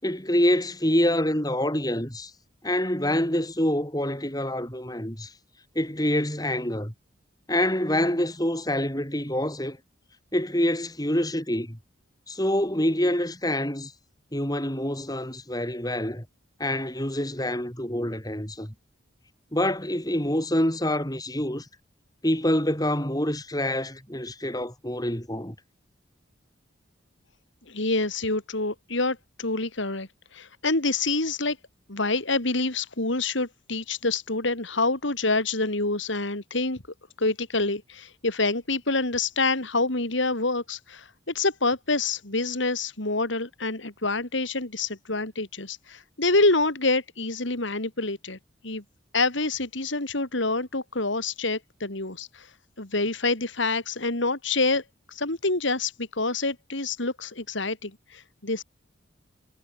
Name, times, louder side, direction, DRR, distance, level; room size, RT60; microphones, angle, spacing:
voice 1, 0.0-2.3 2.6-5.3 5.8-6.9 7.5-9.8 10.3-11.8 12.3-13.9 14.3-16.3 16.6-18.7 19.5-21.7 22.2-25.6, left 1 dB, 20° left, 5.3 m, -26 dB
voice 2, 27.7-31.6 31.9-36.8 37.2-48.4 48.6-48.8 49.1-52.5 52.8-54.8 55.1-58.6, left 3 dB, 70° left, 3.2 m, -27 dB
head